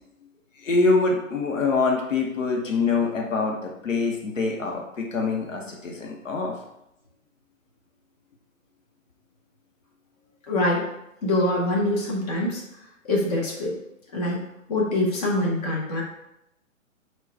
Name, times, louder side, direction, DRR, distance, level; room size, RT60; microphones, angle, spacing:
voice 1, 0.6-6.5, left 3 dB, 65° left, 0 dB, 1.1 m, -24 dB
voice 2, 10.5-10.9 11.2-12.6 13.0-13.8 14.1-14.4 14.7-16.0, left 1 dB, 30° left, -3 dB, 1.0 m, -24 dB
4.5 x 2.5 x 4.4 m, 0.82 s
figure-of-eight pair, 125°, 41 cm